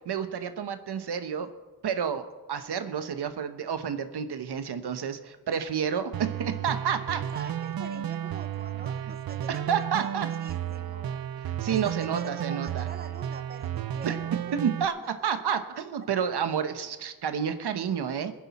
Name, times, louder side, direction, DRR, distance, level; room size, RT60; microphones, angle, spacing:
voice 1, 0.1-1.5 1.8-7.2 9.5-10.3 11.6-12.9 14.0-14.2 14.5-18.3, right 7 dB, 80° right, 9 dB, 1.0 m, -30 dB
sound 1, 6.1-14.8, right 10 dB, 60° right, 0.6 m, -33 dB
voice 2, 7.3-11.2 11.6-14.4 15.5-15.8, right 5 dB, 25° right, 9 dB, 0.8 m, -45 dB
22.5 x 10.0 x 4.2 m, 1.3 s
wide cardioid pair, 175°, 39 cm